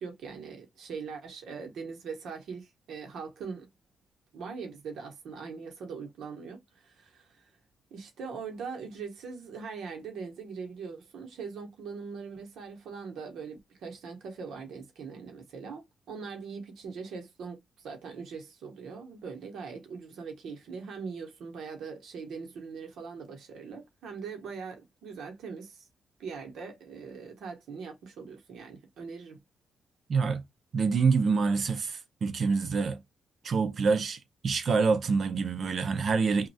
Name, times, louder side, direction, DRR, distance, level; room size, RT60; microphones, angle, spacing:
voice 1, 0.0-3.7 4.3-7.4 7.9-25.9 26.2-29.4, right 5 dB, 75° right, 1.1 m, -41 dB
voice 2, 30.1-30.4 30.7-33.0 33.4-34.2 34.4-36.5, right 5 dB, 50° right, 0.6 m, -26 dB
3.1 x 2.5 x 2.7 m
cardioid pair, 105°, 0 cm